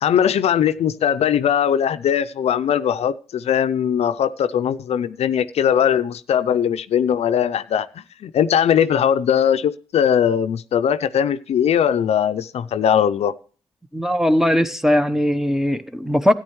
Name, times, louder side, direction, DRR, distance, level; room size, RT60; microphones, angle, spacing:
voice 1, 0.0-7.9 8.2-13.3, left 9 dB, 70° left, 0.5 m, -20 dB
voice 2, 13.9-16.3, left 1 dB, 5° right, 0.9 m, -19 dB
13.0 x 9.7 x 3.1 m
cardioid pair, 70°, 11 cm